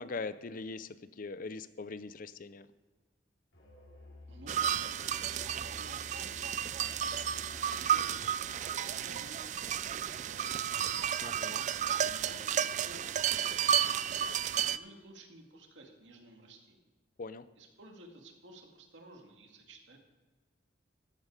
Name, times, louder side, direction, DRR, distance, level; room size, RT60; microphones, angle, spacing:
voice 1, 0.0-2.7 11.2-11.7 17.2-17.4, left 4 dB, 50° left, 14 dB, 0.5 m, -41 dB
Musical instrument, 3.5-8.7, left 2 dB, 80° left, 4.0 m, -52 dB
voice 2, 4.3-7.4 7.7-11.0 11.4-14.3 14.7-16.9 17.6-20.0, right 2 dB, 90° right, 2 dB, 2.2 m, -55 dB
sound 1, 4.5-14.8, right 9 dB, 40° right, 0.3 m, -32 dB
14.0 x 8.8 x 4.9 m, 1.3 s
head